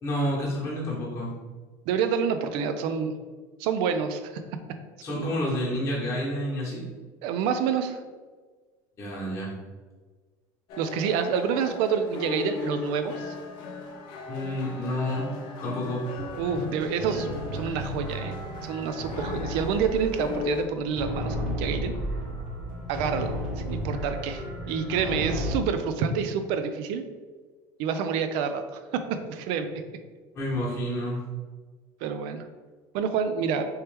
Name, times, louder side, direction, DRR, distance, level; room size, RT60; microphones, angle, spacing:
voice 1, 0.0-1.3 5.0-6.8 9.0-9.5 14.3-15.3 15.6-16.1 30.3-31.2, left 1 dB, 30° left, -6 dB, 1.3 m, -29 dB
voice 2, 1.9-3.1 3.6-4.3 5.1-5.3 7.2-8.0 10.8-13.3 15.8-15.9 16.4-17.3 17.5-18.3 18.6-21.9 22.9-27.0 27.8-29.7 32.0-32.4 32.9-33.7, right 6 dB, 70° right, 8 dB, 0.4 m, -28 dB
sound 1, 10.7-20.7, left 5 dB, 60° left, 0.5 m, -38 dB
sound 2, 16.1-25.6, equal, 15° right, 1.0 m, -33 dB
3.1 x 3.0 x 3.3 m, 1.4 s
supercardioid pair, 120°, 9 cm